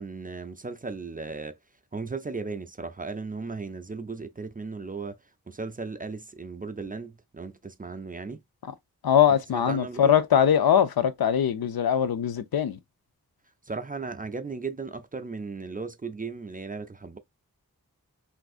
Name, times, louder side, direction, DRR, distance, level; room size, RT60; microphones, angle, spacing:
voice 1, 0.0-1.6 1.9-5.2 5.5-8.4 9.5-10.2 13.7-17.2, right 4 dB, 25° right, 0.3 m, -36 dB
voice 2, 9.0-12.8, left 9 dB, 75° left, 0.5 m, -22 dB
3.5 x 2.5 x 2.3 m
wide cardioid pair, 55°, 37 cm